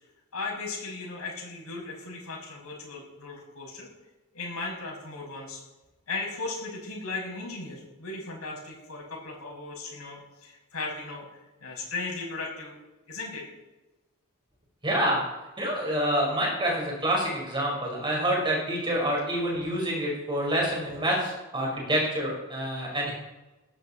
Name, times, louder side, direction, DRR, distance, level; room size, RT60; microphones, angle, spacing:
voice 1, 0.3-3.9 4.3-5.6 6.1-11.2 11.6-12.8 13.1-13.5, left 3 dB, 80° left, -2 dB, 7.2 m, -36 dB
voice 2, 14.8-15.2 15.6-23.1, right 1 dB, 20° right, -2 dB, 5.5 m, -27 dB
20.0 x 15.5 x 4.5 m, 1.1 s
head